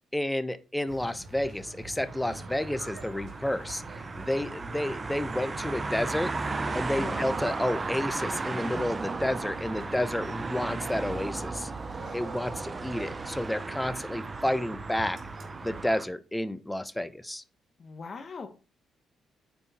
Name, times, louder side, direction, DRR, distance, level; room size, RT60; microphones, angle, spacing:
voice 1, 0.1-6.3 6.7-11.7 12.1-15.2 15.6-17.4, left 1 dB, 5° left, 14 dB, 0.7 m, -31 dB
sound 1, 0.9-15.9, right 3 dB, 55° right, 2.7 m, -44 dB
sound 2, 2.1-16.1, right 3 dB, 30° right, 0.6 m, -36 dB
voice 2, 7.0-7.3 17.8-18.5, left 4 dB, 40° left, 6 dB, 1.1 m, -40 dB
9.0 x 4.5 x 4.2 m, 0.33 s
cardioid pair, 90°, 0 cm